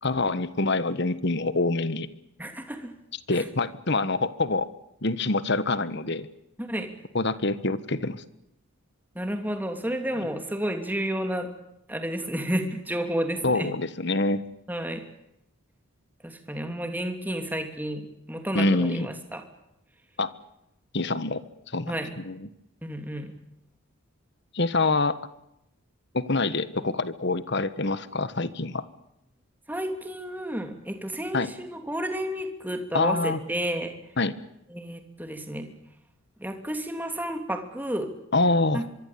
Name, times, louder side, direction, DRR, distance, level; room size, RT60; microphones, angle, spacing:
voice 1, 0.0-2.1 3.3-4.7 5.0-6.3 7.1-8.2 10.2-10.3 13.4-14.4 18.5-19.1 20.2-20.3 20.9-21.4 21.7-22.5 24.5-25.2 26.1-28.8 31.3-31.5 32.9-33.4 34.2-34.3 38.3-38.8, left 2 dB, 50° left, 15 dB, 1.4 m, -26 dB
voice 2, 2.4-2.9 3.3-3.4 6.6-6.9 9.1-11.5 11.9-13.7 14.7-15.0 16.2-18.0 18.3-19.4 21.9-22.1 22.8-23.3 29.7-33.9 34.7-35.7 36.4-38.1 38.7-38.8, right 1 dB, 10° right, 6 dB, 2.9 m, -31 dB
24.0 x 24.0 x 8.6 m, 0.84 s
head